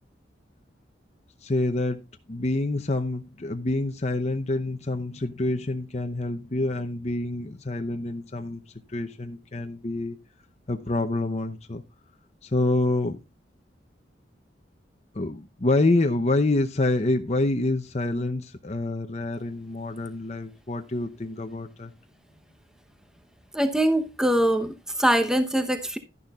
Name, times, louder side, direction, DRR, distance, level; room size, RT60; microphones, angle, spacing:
voice 1, 1.4-2.0 2.3-8.6 8.9-10.2 10.7-11.8 12.4-13.2 15.1-21.9, left 2 dB, 35° left, 0.8 m, -27 dB
voice 2, 23.5-26.0, right 1 dB, 5° right, 0.9 m, -23 dB
11.5 x 11.0 x 2.4 m
head